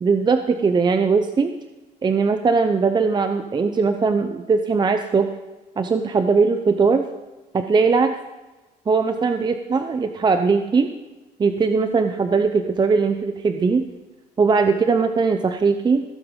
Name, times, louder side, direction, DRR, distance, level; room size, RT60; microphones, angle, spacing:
voice 1, 0.0-1.5 2.0-5.3 5.8-7.1 7.5-8.2 8.9-10.9 11.4-13.9 14.4-16.0, right 4 dB, 25° right, 8 dB, 0.6 m, -20 dB
16.0 x 7.8 x 5.1 m, 1.1 s
cardioid pair, 110°, 17 cm